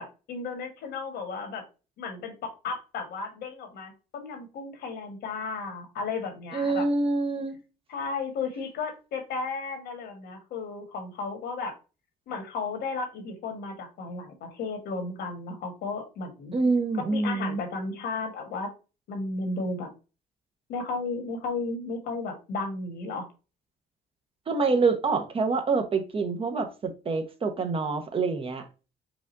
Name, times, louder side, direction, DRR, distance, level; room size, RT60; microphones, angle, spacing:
voice 1, 0.0-1.6 2.0-6.9 7.9-11.7 12.3-16.5 16.9-18.7 19.1-19.9 20.7-23.3, left 4 dB, 70° left, 1.5 m, -34 dB
voice 2, 6.5-7.6 16.5-17.6 24.5-28.6, right 4 dB, 35° right, 0.9 m, -26 dB
4.9 x 2.5 x 3.8 m
cardioid pair, 110°, 17 cm